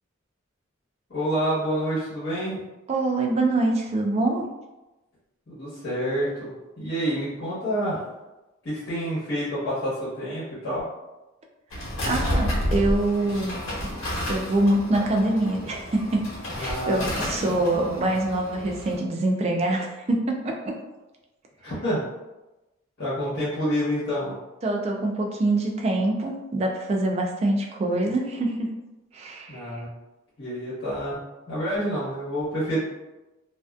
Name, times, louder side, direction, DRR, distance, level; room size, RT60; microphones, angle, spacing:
voice 1, 1.1-2.6 5.5-8.1 8.6-10.8 16.6-18.0 21.6-22.0 23.0-24.3 29.5-29.9 30.4-31.2 31.5-32.8, equal, 55° left, -12 dB, 1.1 m, -28 dB
voice 2, 2.9-4.5 12.1-14.0 14.3-16.2 16.6-20.8 24.6-28.7 29.1-29.8, right 2 dB, 30° right, 1 dB, 0.3 m, -25 dB
sound 1, 11.7-19.0, equal, 85° left, 1.0 m, -30 dB
2.5 x 2.2 x 2.3 m, 1.0 s
head